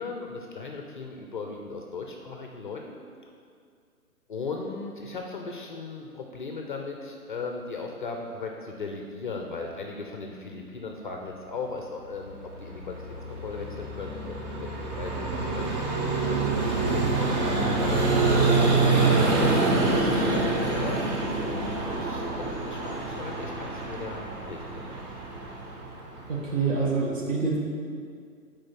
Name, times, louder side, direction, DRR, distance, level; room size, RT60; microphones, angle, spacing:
voice 1, 0.0-3.0 4.3-15.7 16.2-21.1 21.4-25.0, left 4 dB, 35° left, 2 dB, 0.5 m, -37 dB
Vehicle, 12.2-26.9, right 3 dB, 30° right, 0.8 m, -26 dB
voice 2, 26.3-27.6, right 4 dB, 55° right, -2 dB, 1.6 m, -27 dB
5.1 x 4.3 x 5.8 m, 2.2 s
figure-of-eight pair, 130°, 45 cm